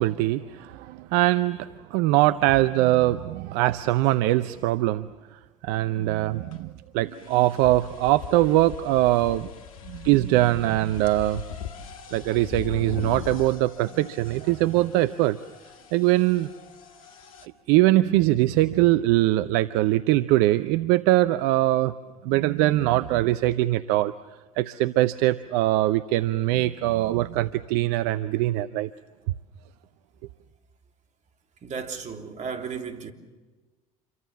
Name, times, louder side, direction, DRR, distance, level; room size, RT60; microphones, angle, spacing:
voice 1, 0.0-5.1 5.6-9.5 9.9-11.4 12.1-15.4 15.9-16.5 17.7-21.9 22.2-24.1 24.6-28.9, right 16 dB, 70° right, 0.7 m, -22 dB
sound 1, 6.5-6.6 7.1-17.5, left 7 dB, 85° left, 1.7 m, -40 dB
voice 2, 31.6-33.1, right 6 dB, 45° right, 3.3 m, -34 dB
28.0 x 23.5 x 7.3 m
hypercardioid pair, 60°, 17 cm